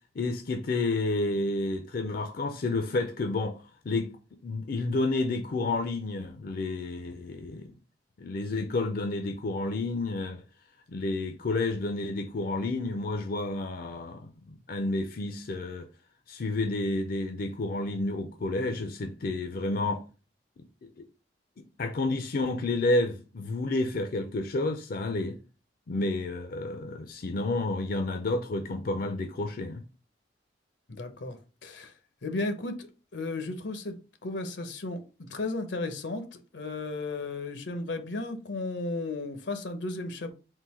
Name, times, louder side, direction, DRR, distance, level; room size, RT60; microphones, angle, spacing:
voice 1, 0.2-4.1 4.4-7.7 8.2-10.4 10.9-15.9 16.3-20.0 21.8-25.4 25.9-29.8, left 2 dB, 55° left, 0.5 m, -30 dB
voice 2, 30.9-31.9 32.2-34.0 34.2-35.0 35.3-40.3, left 2 dB, 85° left, 0.8 m, -34 dB
3.8 x 2.6 x 4.2 m
head